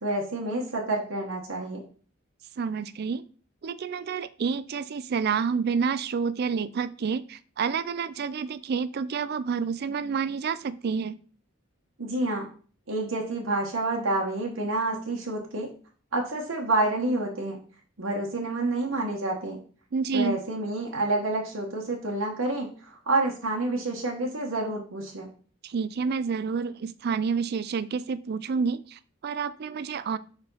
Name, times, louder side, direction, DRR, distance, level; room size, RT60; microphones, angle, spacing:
voice 1, 0.0-1.8 12.0-12.5 12.9-15.7 16.1-17.6 18.0-19.6 20.1-25.3, right 2 dB, 85° right, -1 dB, 1.2 m, -28 dB
voice 2, 2.6-3.2 3.6-11.2 19.9-20.4 25.6-30.2, right 5 dB, 50° right, 15 dB, 0.4 m, -29 dB
4.8 x 4.4 x 5.4 m, 0.41 s
head